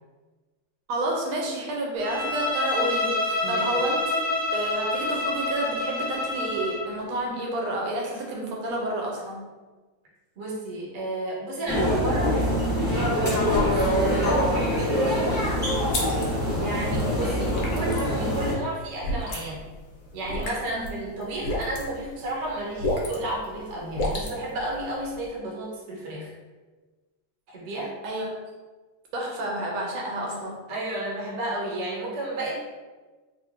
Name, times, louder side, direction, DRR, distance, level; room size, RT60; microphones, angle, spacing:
voice 1, 0.9-9.4 20.7-21.0 28.0-28.4 29.1-30.6, right 1 dB, 80° right, -1 dB, 1.4 m, -30 dB
Bowed string instrument, 2.0-6.9, left 2 dB, 25° left, 0.9 m, -27 dB
voice 2, 10.4-13.2 13.6-15.4 16.5-19.7 20.1-26.3 27.5-27.9 30.7-32.6, right 1 dB, 50° right, -4 dB, 0.9 m, -32 dB
sound 1, 11.7-18.5, equal, 10° right, 0.5 m, -24 dB
sound 2, 13.5-25.3, left 1 dB, 75° left, 0.7 m, -34 dB
3.5 x 3.1 x 2.5 m, 1.3 s
omnidirectional pair, 2.4 m